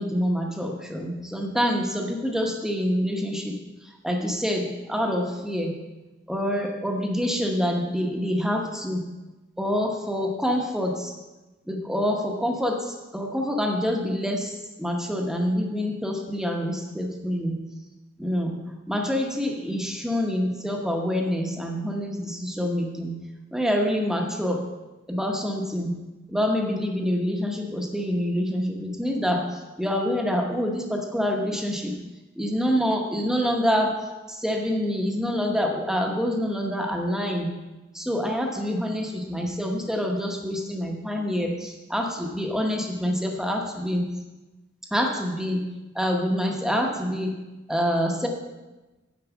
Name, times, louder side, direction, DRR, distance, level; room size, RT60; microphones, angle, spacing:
voice 1, 0.0-3.6 3.8-5.8 6.3-9.1 9.6-11.1 11.7-17.6 18.2-18.6 18.9-23.1 23.5-24.6 25.1-26.0 26.3-32.0 32.4-34.0 34.3-37.5 37.9-44.0 44.9-45.7 45.9-47.4 47.7-48.3, equal, 5° right, 1 dB, 0.9 m, -26 dB
9.4 x 4.6 x 7.0 m, 1.1 s
head